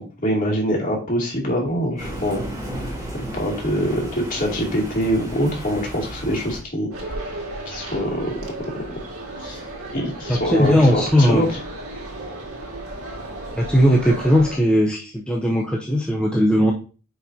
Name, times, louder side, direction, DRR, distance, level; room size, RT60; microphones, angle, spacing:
voice 1, 0.2-2.4 3.1-7.1 7.7-8.3 9.4-9.6 9.9-11.6, equal, 35° left, -3 dB, 2.6 m, -24 dB
Thunder, 2.0-6.6, right 1 dB, 15° right, 3.3 m, -34 dB
sound 1, 6.9-14.6, right 2 dB, 75° right, 2.0 m, -34 dB
voice 2, 10.3-11.5 13.6-16.7, equal, 5° left, -2 dB, 0.6 m, -18 dB
9.2 x 4.7 x 2.8 m, 0.36 s
head